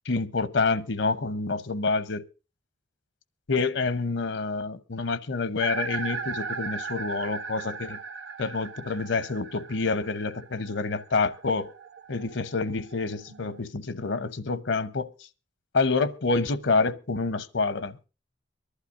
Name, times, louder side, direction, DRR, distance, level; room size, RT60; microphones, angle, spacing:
voice 1, 0.1-2.3 3.5-8.0 8.4-11.7 12.1-15.1 15.7-18.1, left 4 dB, 75° left, 0.8 m, -27 dB
sound 1, 5.6-13.6, right 5 dB, 75° right, 1.0 m, -38 dB
23.5 x 11.5 x 2.5 m
head